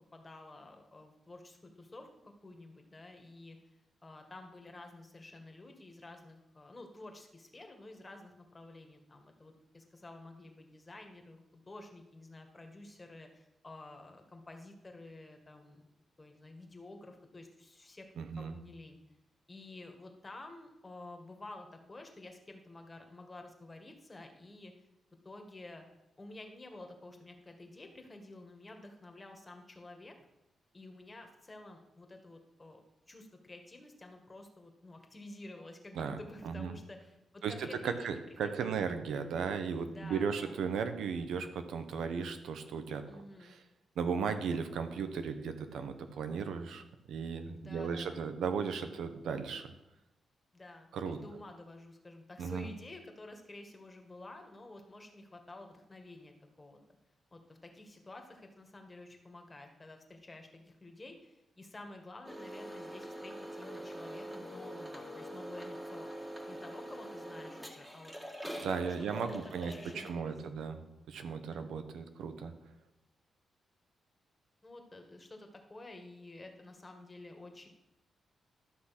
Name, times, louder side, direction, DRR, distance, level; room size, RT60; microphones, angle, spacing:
voice 1, 0.1-3.6 4.0-15.9 16.2-18.1 18.4-19.0 19.5-24.7 25.2-25.8 26.2-30.2 30.7-38.9 39.9-40.6 43.1-43.5 47.5-48.3 50.5-56.8 57.3-66.1 66.5-68.1 68.6-68.7 69.0-70.7 71.5-71.8 74.6-77.7, left 2 dB, 25° left, 4 dB, 1.9 m, -51 dB
voice 2, 18.2-18.5 36.0-36.2 36.4-36.8 37.4-43.6 44.0-49.7 50.9-51.2 52.4-52.7 68.6-70.8 71.1-72.5, right 6 dB, 90° right, 8 dB, 1.0 m, -36 dB
sound 1, 62.2-70.1, right 1 dB, 10° right, 1.8 m, -44 dB
12.5 x 6.1 x 6.0 m, 0.90 s
cardioid pair, 90°, 0 cm